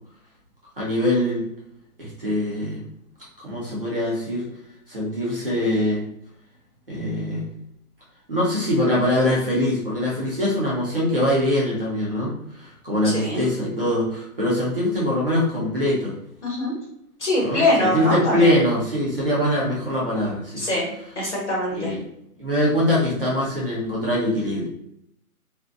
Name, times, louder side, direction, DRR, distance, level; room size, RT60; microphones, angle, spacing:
voice 1, 0.8-1.5 2.0-2.8 3.4-4.5 4.9-6.0 6.9-7.5 8.3-16.1 17.4-20.6 21.7-22.0 22.4-24.7, left 1 dB, 40° right, -7 dB, 0.7 m, -23 dB
voice 2, 13.0-13.4 16.4-16.8 17.2-18.5 20.6-20.9 21.1-21.9, left 1 dB, 50° left, -5 dB, 1.1 m, -23 dB
2.5 x 2.2 x 2.3 m, 0.77 s
hypercardioid pair, 180°, 45 cm